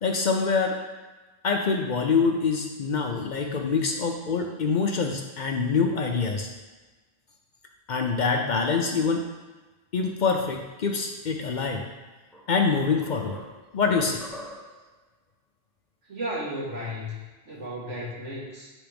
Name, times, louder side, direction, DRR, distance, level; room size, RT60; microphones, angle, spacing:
voice 1, 0.0-0.8 1.4-6.5 7.9-9.3 9.9-11.9 12.5-13.4 13.7-14.2, left 5 dB, 50° left, 2 dB, 0.6 m, -25 dB
sound 1, 12.3-14.9, left 1 dB, ahead, 0.6 m, -44 dB
voice 2, 16.1-18.7, equal, 85° right, -5 dB, 2.0 m, -34 dB
9.2 x 3.5 x 3.4 m, 1.2 s
omnidirectional pair, 1.2 m